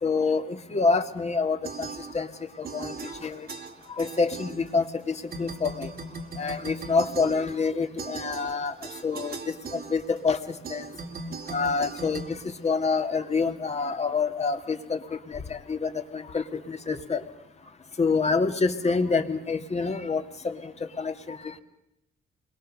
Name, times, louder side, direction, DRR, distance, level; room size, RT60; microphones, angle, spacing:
voice 1, 0.0-3.5 3.9-5.9 6.4-10.9 11.5-17.2 18.0-21.6, left 4 dB, 35° left, 6 dB, 2.1 m, -27 dB
sound 1, 1.6-2.4 2.6-5.0 5.3-13.2, right 3 dB, 50° right, 2.0 m, -39 dB
28.5 x 22.0 x 6.5 m, 0.84 s
cardioid pair, 90°, 20 cm